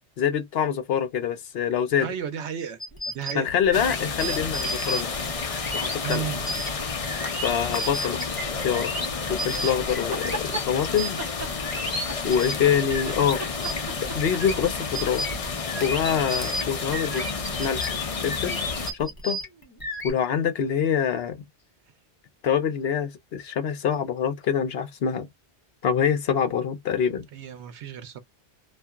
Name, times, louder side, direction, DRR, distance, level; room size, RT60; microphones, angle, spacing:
voice 1, 0.2-2.1 3.3-5.1 5.7-6.2 7.4-8.2 8.6-8.9 9.3-11.2 12.2-13.4 14.0-15.2 15.8-17.3 17.6-18.0 18.2-18.6 19.0-19.4 20.0-21.4 22.4-25.3 25.8-27.3, left 8 dB, 65° left, 0.8 m, -25 dB
voice 2, 2.0-2.8 3.1-3.5 6.0-6.4 27.3-28.2, right 7 dB, 75° right, 0.9 m, -33 dB
sound 1, 2.8-13.3 13.6-20.1, equal, 20° left, 1.1 m, -33 dB
sound 2, 3.7-18.9, left 4 dB, 45° left, 0.5 m, -31 dB
sound 3, 9.9-10.7 11.2-12.6 12.9-15.1, right 2 dB, 20° right, 0.4 m, -36 dB
2.7 x 2.5 x 2.3 m
omnidirectional pair, 1.2 m